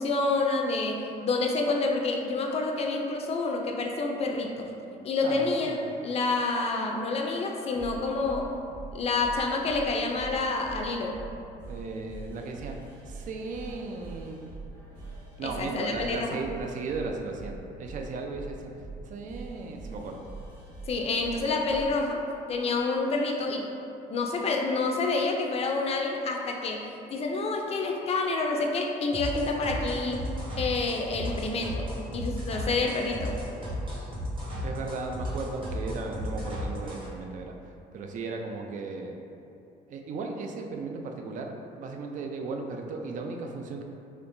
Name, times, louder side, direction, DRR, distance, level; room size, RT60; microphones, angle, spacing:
voice 1, 0.0-4.7 5.0-5.8 6.0-8.5 8.9-11.2 15.4-16.4 20.9-22.2 22.5-23.7 24.1-30.3 30.6-31.9 32.1-33.4, left 3 dB, 40° left, 2 dB, 0.4 m, -28 dB
voice 2, 5.2-5.8 11.7-14.5 15.4-18.7 19.0-20.2 34.6-39.2 39.9-43.8, right 3 dB, 50° right, 3 dB, 0.4 m, -36 dB
sound 1, 5.6-6.6 7.3-21.9 22.6-23.0, right 3 dB, 85° right, 1.3 m, -44 dB
sound 2, 29.1-37.1, equal, 30° right, 0.9 m, -34 dB
4.2 x 2.9 x 2.6 m, 2.6 s
cardioid pair, 110°, 17 cm